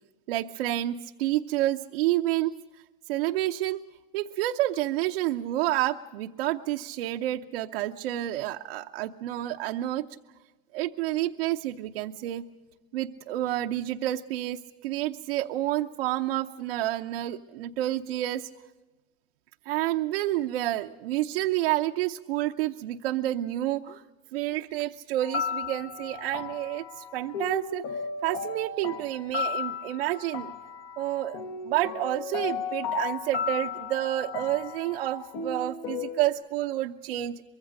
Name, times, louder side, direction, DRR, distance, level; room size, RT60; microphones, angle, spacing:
voice 1, 0.3-3.8 4.1-10.2 10.7-12.5 12.9-18.5 19.7-24.0 24.3-27.8 28.2-30.5 31.0-37.4, right 14 dB, 80° right, 4 dB, 0.8 m, -29 dB
sound 1, 25.2-36.3, left 6 dB, 65° left, 1.7 m, -35 dB
24.5 x 22.5 x 6.5 m, 1.2 s
supercardioid pair, 110°, 29 cm